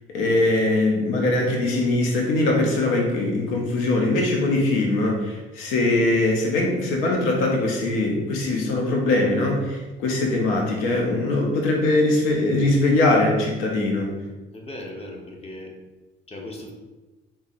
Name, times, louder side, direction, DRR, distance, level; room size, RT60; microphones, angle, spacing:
voice 1, 0.1-14.1, left 2 dB, 85° left, 0 dB, 0.7 m, -21 dB
voice 2, 14.5-15.7 16.3-16.7, left 1 dB, 30° left, 0 dB, 0.8 m, -37 dB
3.5 x 2.0 x 4.1 m, 1.2 s
cardioid pair, 100°, 20 cm